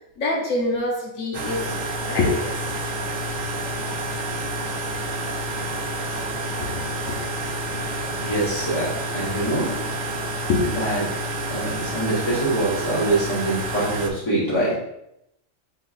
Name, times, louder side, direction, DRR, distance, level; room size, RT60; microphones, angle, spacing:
voice 1, 0.2-1.7 2.1-2.5 6.6-7.1 7.7-7.8 10.5-10.6, left 3 dB, 80° left, -2 dB, 1.2 m, -25 dB
sound 1, 1.3-14.1, right 1 dB, 85° right, 1.1 m, -29 dB
voice 2, 8.2-9.8 10.7-11.0 11.5-14.7, right 2 dB, 20° left, -6 dB, 1.4 m, -24 dB
5.8 x 3.7 x 2.4 m, 0.81 s
omnidirectional pair, 1.4 m